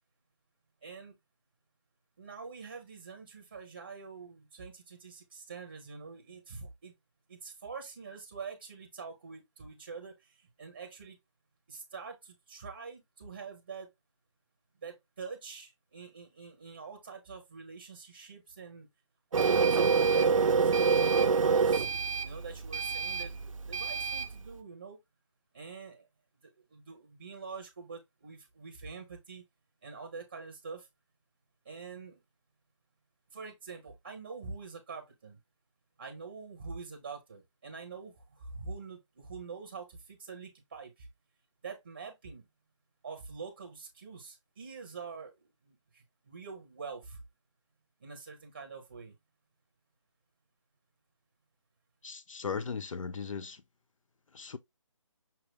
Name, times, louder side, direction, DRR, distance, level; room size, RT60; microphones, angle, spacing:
voice 1, 0.8-1.2 2.2-6.9 7.3-11.2 11.7-13.9 14.8-18.9 19.3-21.9 22.2-25.0 25.5-26.1 26.4-29.4 29.8-30.9 31.6-32.2 33.3-35.4 36.0-41.1 41.6-42.5 43.0-47.2 48.0-49.1, right 5 dB, 20° right, 0.8 m, -45 dB
Printer, 19.3-24.3, right 5 dB, 90° right, 0.5 m, -26 dB
voice 2, 52.0-53.6 54.3-54.6, left 5 dB, 80° left, 0.6 m, -37 dB
5.8 x 2.0 x 3.2 m
hypercardioid pair, 175°, 16 cm